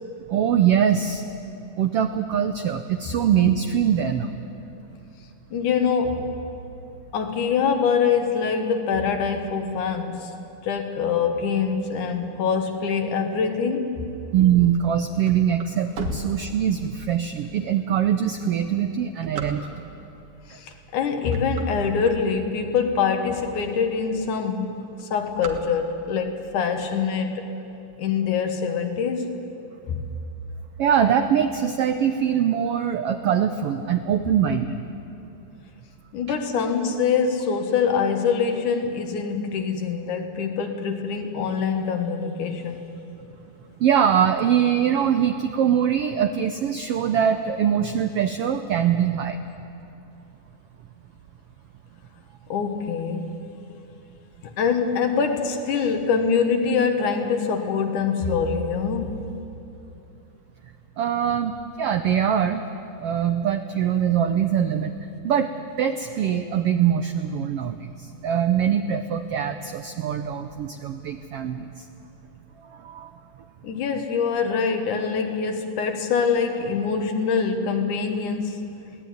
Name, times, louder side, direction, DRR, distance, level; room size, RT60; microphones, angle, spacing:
voice 1, 0.3-1.2 1.8-4.3 14.3-19.9 30.8-34.8 43.8-49.4 61.0-62.6 63.0-64.9 65.2-65.5 65.8-71.9 72.7-73.1, right 9 dB, 90° right, 1.3 m, -23 dB
voice 2, 5.5-6.4 7.1-10.3 10.6-14.1 16.1-16.2 20.5-27.5 28.0-29.4 29.9-30.0 36.1-42.9 52.5-53.4 54.4-59.3 73.6-78.7, left 6 dB, 75° left, 2.9 m, -24 dB
sound 1, 15.2-17.0 17.6-17.7 18.4-20.1 20.7-20.9 21.2-22.8 23.3-23.4 23.6-23.7 24.0-24.3 24.6-26.2, right 3 dB, 50° right, 2.2 m, -37 dB
23.0 x 17.5 x 9.4 m
omnidirectional pair, 3.6 m